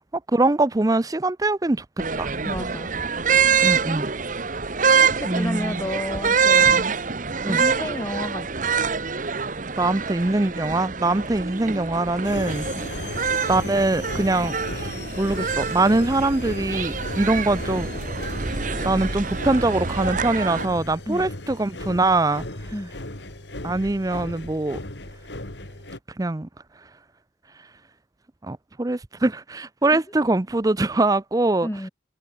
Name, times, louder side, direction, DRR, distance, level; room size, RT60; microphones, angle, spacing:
voice 1, 0.1-1.8 2.2-2.3 3.6-4.1 5.2-5.9 7.4-7.6 9.8-17.9 18.8-22.5 23.6-24.8 26.2-26.5 28.4-31.7, right 2 dB, 20° right, 0.5 m, -23 dB
sound 1, 2.0-20.6, right 6 dB, 45° right, 1.3 m, -25 dB
voice 2, 2.4-2.9 5.0-7.1 7.5-8.5 12.7-12.9 21.1-21.3 22.7-22.9 29.9-30.0 31.6-31.9, left 1 dB, 15° left, 1.6 m, -31 dB
sound 2, 12.2-26.0, left 1 dB, 65° left, 3.4 m, -35 dB
head